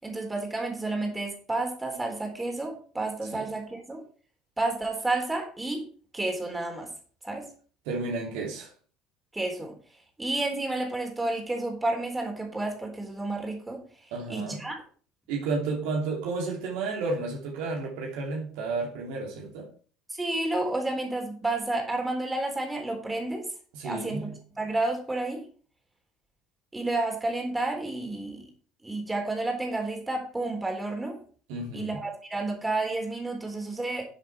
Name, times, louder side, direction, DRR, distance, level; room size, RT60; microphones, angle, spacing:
voice 1, 0.0-4.0 4.6-5.9 6.1-6.9 7.2-7.5 9.3-9.7 10.2-13.8 14.3-14.8 20.2-23.5 23.8-25.4 26.7-28.5 28.8-31.2 31.7-34.0, right 2 dB, 10° right, 3.9 m, -30 dB
voice 2, 7.9-8.7 14.1-14.7 15.3-19.7 23.7-24.4 31.5-32.0, right 3 dB, 60° right, 2.8 m, -32 dB
11.5 x 7.4 x 4.6 m
figure-of-eight pair, 65°, 0 cm